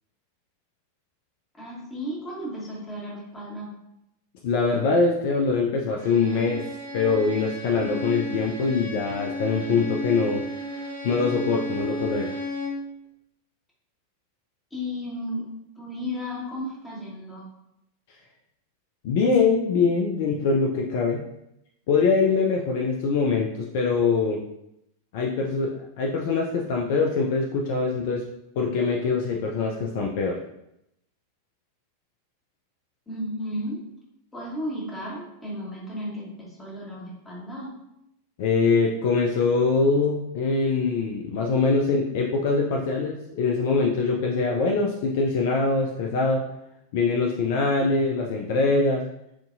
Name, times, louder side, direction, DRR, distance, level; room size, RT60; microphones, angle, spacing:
voice 1, 1.5-3.7 14.7-15.4 15.8-17.5 33.1-33.8 34.3-37.7, equal, 10° left, -4 dB, 1.4 m, -34 dB
voice 2, 4.4-6.6 6.9-10.5 11.0-12.3 19.0-21.3 21.9-24.4 25.1-28.2 28.6-30.4 38.4-46.5 46.9-49.0, left 4 dB, 50° left, 0 dB, 0.4 m, -23 dB
Bowed string instrument, 6.0-12.9, left 1 dB, 70° right, 0.9 m, -33 dB
5.8 x 2.7 x 2.6 m, 0.83 s
figure-of-eight pair, 90°, 0 cm